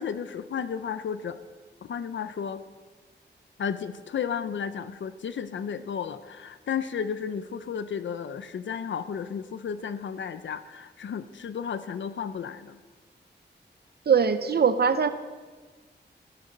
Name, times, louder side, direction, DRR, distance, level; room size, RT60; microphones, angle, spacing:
voice 1, 0.0-1.4 1.8-2.6 3.6-12.8, left 7 dB, 85° left, 11 dB, 0.7 m, -33 dB
voice 2, 14.1-15.1, right 6 dB, 60° right, 11 dB, 0.7 m, -21 dB
14.0 x 14.0 x 5.3 m, 1.4 s
wide cardioid pair, 170°, 19 cm